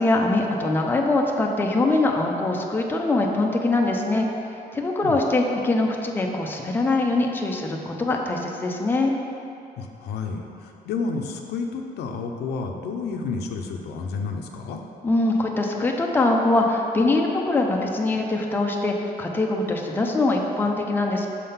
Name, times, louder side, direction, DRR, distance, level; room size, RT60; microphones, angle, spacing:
voice 1, 0.0-9.1 15.0-21.3, left 2 dB, 10° left, 1 dB, 0.5 m, -23 dB
voice 2, 9.8-14.8, left 4 dB, 90° left, 3 dB, 0.6 m, -30 dB
6.4 x 3.8 x 5.6 m, 2.9 s
cardioid pair, 150°, 17 cm